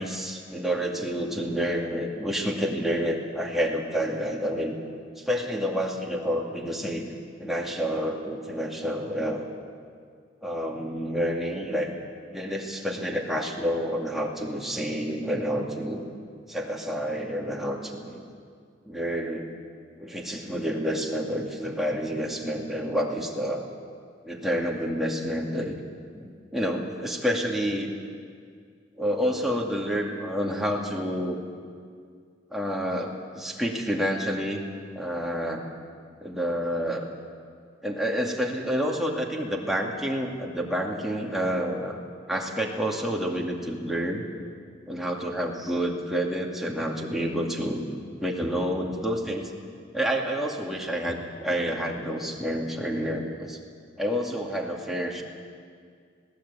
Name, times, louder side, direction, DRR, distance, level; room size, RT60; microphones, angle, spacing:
voice 1, 0.0-4.8 5.2-7.1 7.4-9.4 10.4-11.9 12.3-16.0 16.5-18.2 18.8-19.5 20.0-23.7 24.2-25.8 26.1-27.9 29.0-31.4 32.5-34.6 35.0-35.6 36.2-37.1 37.8-42.0 42.3-44.2 44.9-49.5 49.9-53.6 54.0-55.2, equal, ahead, -1 dB, 2.3 m, -29 dB
20.5 x 16.5 x 8.3 m, 2.1 s
head